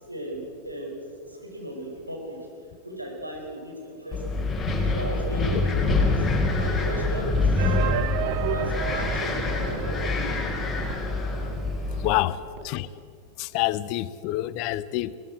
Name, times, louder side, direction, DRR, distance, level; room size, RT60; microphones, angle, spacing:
voice 1, 0.1-1.0 1.3-2.5 2.8-6.3 6.6-8.2 8.5-10.4 11.8-12.0, equal, 85° right, 6.0 m, -36 dB
Wind, 4.1-12.2, left 3 dB, 10° left, 4.5 m, -25 dB
sound 1, 7.6-11.3 11.6-11.7 11.9-12.0 12.6-12.7, right 10 dB, 45° right, 1.2 m, -32 dB
voice 2, 12.0-12.9 13.4-15.2, left 15 dB, 45° left, 0.8 m, -27 dB
22.0 x 19.5 x 7.9 m
figure-of-eight pair, 90°, 0 cm